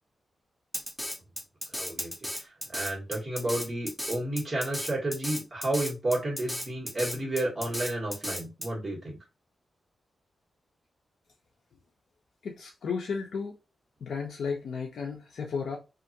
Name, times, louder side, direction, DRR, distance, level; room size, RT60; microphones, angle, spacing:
Drum kit, 0.7-8.7, equal, 5° left, 0.5 m, -35 dB
voice 1, 1.7-9.2, right 1 dB, 25° right, 1.3 m, -31 dB
voice 2, 12.4-13.5 14.0-15.8, left 5 dB, 85° left, 0.5 m, -33 dB
2.5 x 2.4 x 2.6 m
wide cardioid pair, 105°, 0 cm